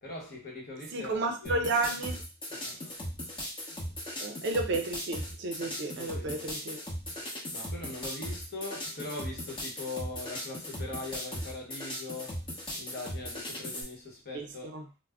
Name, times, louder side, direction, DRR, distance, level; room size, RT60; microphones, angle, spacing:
voice 1, 0.0-1.7 2.5-3.0 5.6-6.5 7.1-7.2 7.5-12.5 12.7-14.8, left 2 dB, 50° left, 0.9 m, -41 dB
voice 2, 0.9-2.2 4.2-6.8 14.3-14.5 14.7-14.8, right 2 dB, 55° right, 0.4 m, -32 dB
sound 1, 1.4-13.8, left 1 dB, 25° left, 0.8 m, -38 dB
2.4 x 2.0 x 3.4 m
head